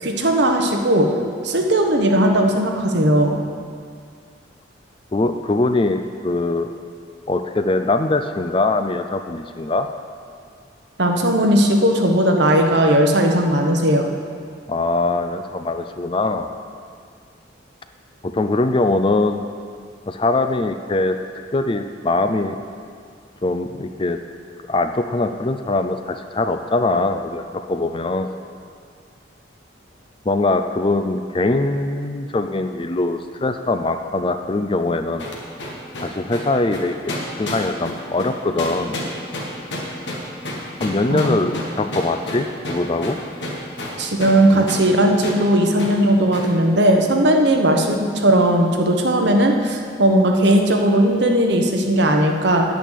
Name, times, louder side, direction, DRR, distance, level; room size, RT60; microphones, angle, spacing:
voice 1, 0.0-1.1 1.4-3.4 11.0-14.1 41.1-41.3 44.0-52.6, right 1 dB, 60° right, 2 dB, 1.1 m, -17 dB
voice 2, 5.1-6.7 7.3-9.9 14.7-16.5 18.2-19.4 20.1-21.2 21.5-22.6 23.4-24.2 24.7-27.4 27.7-28.3 30.3-35.3 36.0-37.0 37.3-39.0 40.8-43.2 44.5-44.7, left 2 dB, 25° left, 8 dB, 0.4 m, -22 dB
sound 1, 35.2-44.4 44.7-44.9 45.2-45.4 45.8-46.0 46.3-46.5, left 1 dB, 65° left, 1.7 m, -30 dB
9.2 x 6.3 x 8.3 m, 2.1 s
head